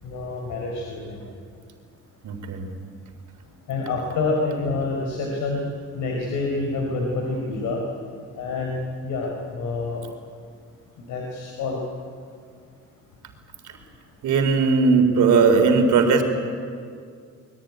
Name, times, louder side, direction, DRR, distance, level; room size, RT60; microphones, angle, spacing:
voice 1, 0.0-1.2 3.7-5.6 5.9-7.8 8.4-10.0 11.1-11.8, left 3 dB, 85° left, 0 dB, 4.5 m, -27 dB
voice 2, 2.2-2.7 14.2-16.2, right 4 dB, 75° right, 5 dB, 3.9 m, -18 dB
24.0 x 22.0 x 9.6 m, 2.2 s
cardioid pair, 90°, 30 cm